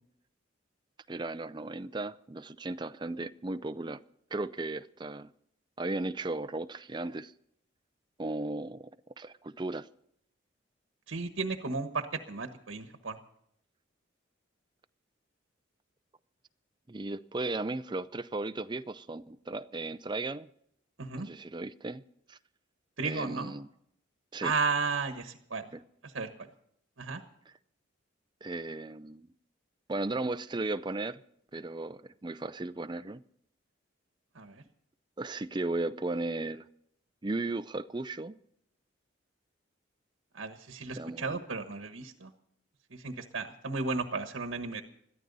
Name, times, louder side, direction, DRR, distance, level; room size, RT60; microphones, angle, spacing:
voice 1, 1.1-4.0 4.3-5.3 5.8-7.3 8.2-8.9 9.2-9.9 16.9-20.5 21.2-22.0 22.3-22.4 23.0-23.7 24.3-24.5 25.7-25.8 28.4-29.3 29.9-31.2 31.5-33.2 35.2-36.6 37.2-38.4 41.0-41.4, right 2 dB, 20° right, 0.5 m, -35 dB
voice 2, 11.1-13.2 21.0-21.3 23.0-23.5 24.4-25.7 26.0-26.3 27.0-27.2 34.3-34.6 40.3-42.3 42.9-44.8, right 4 dB, 75° right, 1.2 m, -34 dB
21.0 x 14.0 x 4.0 m
head